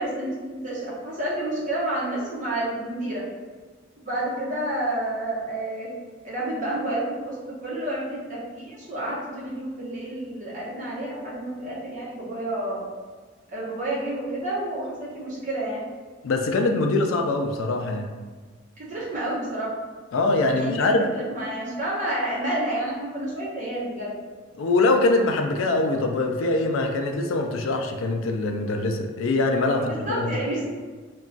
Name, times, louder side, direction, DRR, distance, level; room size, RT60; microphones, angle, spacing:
voice 1, 0.0-3.2 4.0-5.9 6.2-12.8 13.5-15.8 18.8-19.7 20.5-24.1 29.8-30.7, right 1 dB, 40° right, -6 dB, 0.8 m, -30 dB
voice 2, 16.2-18.1 20.1-21.1 24.6-30.4, left 2 dB, 70° left, 4 dB, 0.3 m, -23 dB
2.3 x 2.2 x 3.8 m, 1.4 s
head